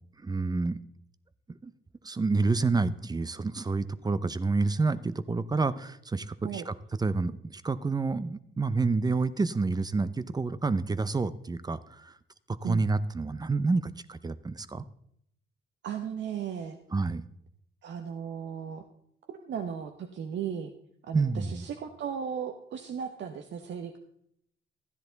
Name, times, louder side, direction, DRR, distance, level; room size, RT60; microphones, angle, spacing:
voice 1, 0.2-0.8 1.6-1.7 2.0-12.1 12.5-14.8 16.9-17.2 21.1-21.6, right 3 dB, 20° right, 14 dB, 0.6 m, -29 dB
voice 2, 15.8-16.8 17.8-18.8 19.3-20.7 21.0-24.0, right 7 dB, 65° right, 5 dB, 0.9 m, -36 dB
13.0 x 10.0 x 4.0 m, 0.71 s
cardioid pair, 90°, 20 cm